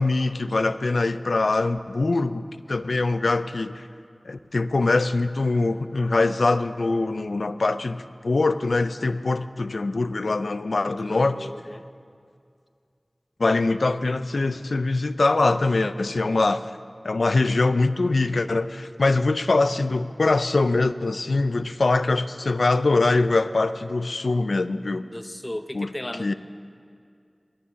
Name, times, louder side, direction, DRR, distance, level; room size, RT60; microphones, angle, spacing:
voice 1, 0.0-3.8 4.3-11.5 13.4-16.7 17.0-25.1 25.7-25.9 26.2-26.3, left 3 dB, 85° left, 13 dB, 0.4 m, -23 dB
voice 2, 10.8-11.8 25.1-26.3, left 1 dB, 25° left, 10 dB, 0.6 m, -36 dB
20.5 x 7.1 x 6.2 m, 2.3 s
wide cardioid pair, 40°, 0 cm